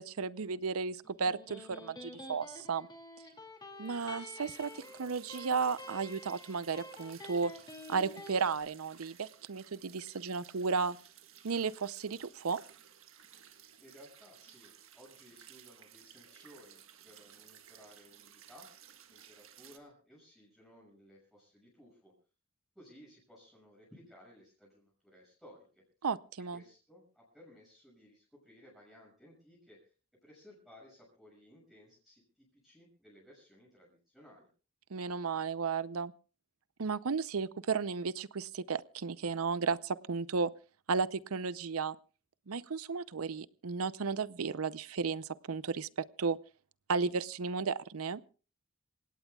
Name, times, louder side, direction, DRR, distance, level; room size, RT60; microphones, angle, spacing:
voice 1, 0.0-2.9 3.8-7.5 7.9-11.0 11.4-12.6 26.0-26.6 34.9-36.1 36.8-40.5 40.9-42.0 42.5-46.4 46.9-48.2, right 5 dB, 80° right, 17 dB, 0.6 m, -34 dB
Electric guitar, 1.0-8.4, left 1 dB, 20° left, 2.5 m, -49 dB
sound 1, 3.9-19.8, right 9 dB, 65° right, 1.7 m, -57 dB
voice 2, 13.8-18.7 19.1-22.1 22.7-25.8 26.5-29.9 30.2-34.5, equal, ahead, -5 dB, 6.7 m, -58 dB
27.5 x 17.0 x 2.3 m, 0.36 s
head